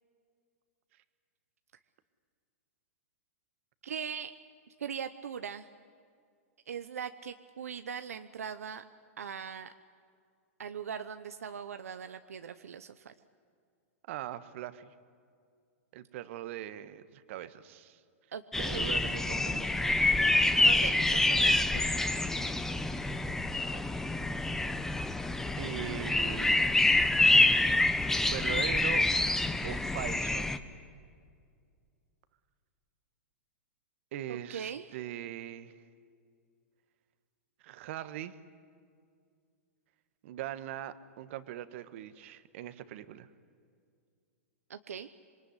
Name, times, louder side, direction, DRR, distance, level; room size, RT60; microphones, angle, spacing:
voice 1, 3.8-4.4 4.8-5.7 6.7-8.8 9.2-9.7 10.6-13.1 18.3-19.0 20.6-21.8 34.3-35.0 44.7-45.1, right 7 dB, 85° right, 10 dB, 0.9 m, -40 dB
voice 2, 14.1-14.9 15.9-18.0 18.6-20.0 23.7-24.1 25.5-26.7 28.2-29.1 29.6-30.5 34.1-35.7 37.6-38.4 40.2-43.3, right 12 dB, 60° right, 13 dB, 1.5 m, -41 dB
sound 1, 18.5-30.6, left 2 dB, 5° left, 1.2 m, -27 dB
26.0 x 22.5 x 9.9 m, 2.2 s
hypercardioid pair, 120°, 8 cm